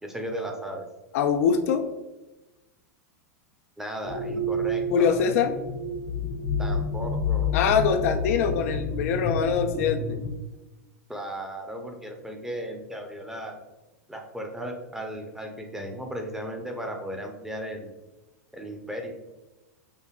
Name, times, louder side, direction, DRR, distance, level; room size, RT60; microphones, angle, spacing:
voice 1, 0.0-0.9 3.8-5.2 6.6-7.6 11.1-13.5 14.1-17.9 18.5-19.2, right 1 dB, 5° right, 2 dB, 0.6 m, -36 dB
voice 2, 1.1-1.8 4.9-5.6 7.5-10.2, left 7 dB, 65° left, 7 dB, 0.4 m, -23 dB
sound 1, 4.0-10.3, left 2 dB, 90° left, 1.1 m, -29 dB
5.1 x 2.5 x 2.3 m, 1.1 s
hypercardioid pair, 105°, 8 cm